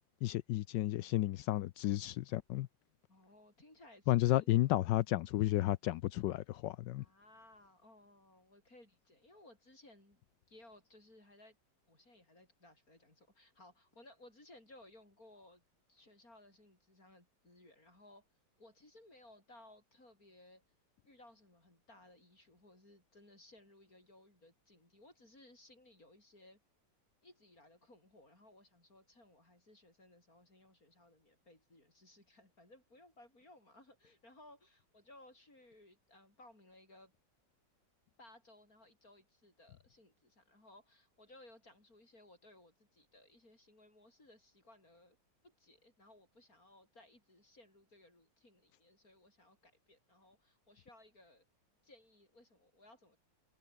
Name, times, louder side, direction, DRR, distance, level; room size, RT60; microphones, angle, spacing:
voice 1, 0.2-2.7 4.1-7.0, left 15 dB, 75° left, 1.2 m, -32 dB
voice 2, 3.1-4.5 7.0-10.2 10.5-11.6 11.9-15.6 15.9-18.3 18.6-20.6 21.0-26.6 27.2-37.1 38.2-45.2 45.4-51.4 51.8-53.2, left 1 dB, 50° left, 8.5 m, -61 dB
omnidirectional pair, 2.0 m